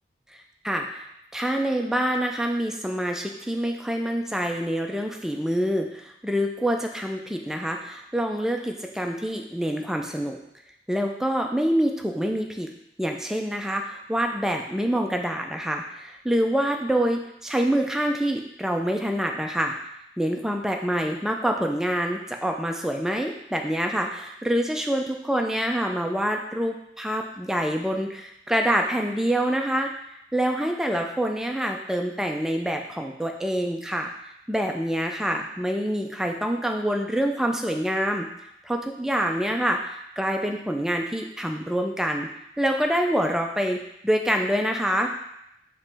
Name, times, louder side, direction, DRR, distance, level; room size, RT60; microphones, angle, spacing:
voice 1, 0.3-1.0 1.3-10.4 10.9-12.7 13.0-19.8 20.2-38.3 38.6-42.3 42.6-45.1, equal, 5° right, 2 dB, 0.3 m, -26 dB
5.2 x 3.0 x 3.3 m, 0.78 s
head